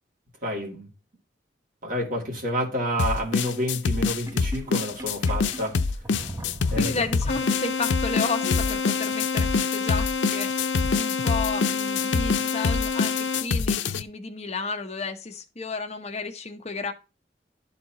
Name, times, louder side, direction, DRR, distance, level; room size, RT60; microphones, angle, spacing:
voice 1, 0.4-0.9 1.8-5.8 6.7-7.0, equal, 50° right, 2.4 m, -29 dB
sound 1, 3.0-14.0, left 5 dB, 90° left, 0.5 m, -25 dB
Sink (filling or washing), 4.1-7.9, right 1 dB, 15° right, 0.7 m, -39 dB
voice 2, 6.7-16.9, left 3 dB, 35° left, 0.9 m, -32 dB
sound 2, 7.3-13.4, left 5 dB, 65° left, 1.0 m, -28 dB
11.0 x 4.2 x 3.0 m
head